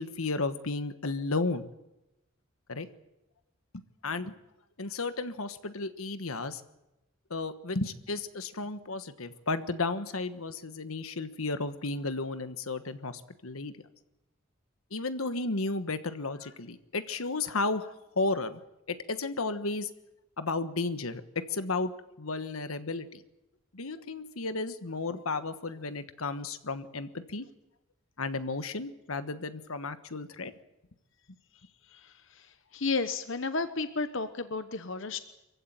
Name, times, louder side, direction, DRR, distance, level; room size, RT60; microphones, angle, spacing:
voice 1, 0.0-1.7 2.7-2.9 3.7-4.3 4.8-6.6 7.3-13.7 14.9-18.6 18.9-19.9 20.4-21.9 22.2-23.2 23.7-27.5 28.2-30.5, left 3 dB, 90° left, 11 dB, 1.3 m, -33 dB
voice 2, 32.7-35.2, left 3 dB, 65° left, 10 dB, 1.0 m, -31 dB
24.5 x 15.5 x 9.1 m, 0.94 s
head